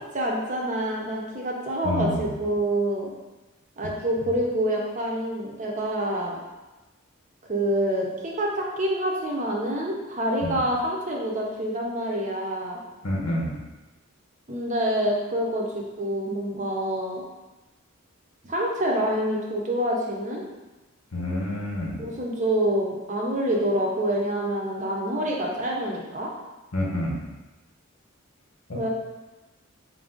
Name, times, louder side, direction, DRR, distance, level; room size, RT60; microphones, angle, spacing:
voice 1, 0.1-3.1 3.8-6.4 7.5-12.8 14.5-17.2 18.4-20.4 22.0-26.3 28.7-28.9, right 1 dB, 35° right, -1 dB, 0.7 m, -27 dB
voice 2, 1.8-2.3 10.4-10.6 13.0-13.5 21.1-22.0 26.7-27.2 28.7-28.9, left 1 dB, 90° left, -3 dB, 0.9 m, -28 dB
3.9 x 2.6 x 3.7 m, 1.1 s
head